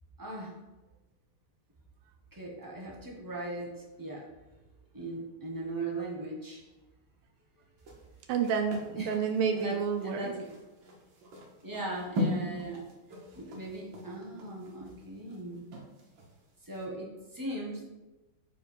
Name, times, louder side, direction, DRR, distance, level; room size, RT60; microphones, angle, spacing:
voice 1, 0.2-0.5 2.3-4.2 4.9-6.6 9.0-9.2 9.5-10.5 11.6-12.8 13.3-15.6 16.6-17.8, right 2 dB, 20° right, -3 dB, 0.5 m, -39 dB
sound 1, 7.8-16.3 16.7-16.8, left 1 dB, 65° right, 1.8 m, -39 dB
voice 2, 8.3-10.3, right 6 dB, 85° right, 5 dB, 1.5 m, -29 dB
4.6 x 4.6 x 5.4 m, 1.1 s
omnidirectional pair, 2.4 m